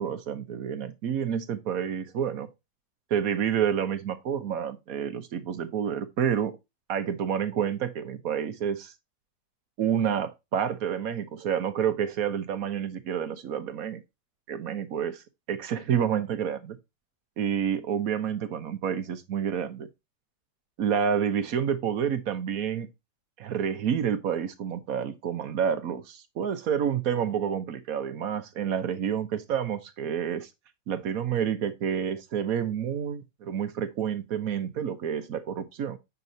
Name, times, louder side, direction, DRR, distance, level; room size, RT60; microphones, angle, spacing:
voice 1, 0.0-2.5 3.1-6.5 6.9-8.9 9.8-14.0 14.5-16.8 17.4-19.9 20.8-22.9 23.4-30.5 30.9-36.0, right 8 dB, 60° right, 1.2 m, -29 dB
8.1 x 6.0 x 2.6 m
omnidirectional pair, 1.8 m